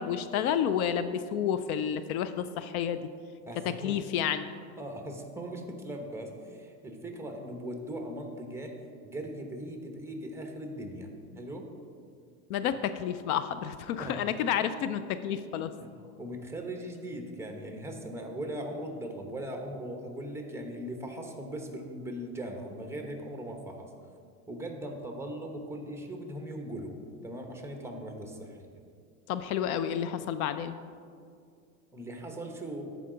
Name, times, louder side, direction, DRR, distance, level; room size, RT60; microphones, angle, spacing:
voice 1, 0.0-3.1 3.8-4.5 12.5-15.7 29.3-30.8, left 9 dB, 65° left, 12 dB, 0.6 m, -30 dB
voice 2, 3.5-4.0 4.8-8.8 9.0-11.1 11.3-11.7 12.6-12.7 14.0-14.6 15.8-15.9 16.2-23.9 24.5-28.7 31.9-32.9, right 1 dB, 5° right, 3 dB, 0.9 m, -39 dB
13.5 x 4.9 x 3.8 m, 2.2 s
supercardioid pair, 120°, 47 cm